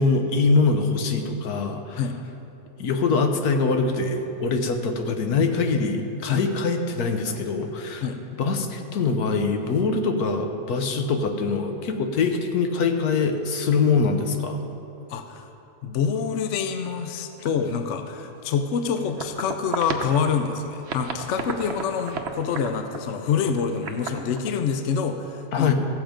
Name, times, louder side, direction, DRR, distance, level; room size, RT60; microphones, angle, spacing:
voice 1, 0.0-2.0 2.8-8.1 8.4-14.6 17.4-17.5 25.5-25.7, left 4 dB, 80° left, 5 dB, 1.4 m, -23 dB
voice 2, 15.1-15.5 15.8-25.7, left 6 dB, 60° left, 8 dB, 0.9 m, -26 dB
sound 1, 18.8-20.5 20.8-24.5, right 5 dB, 55° right, 0.9 m, -33 dB
15.0 x 7.4 x 5.1 m, 2.9 s
omnidirectional pair, 1.6 m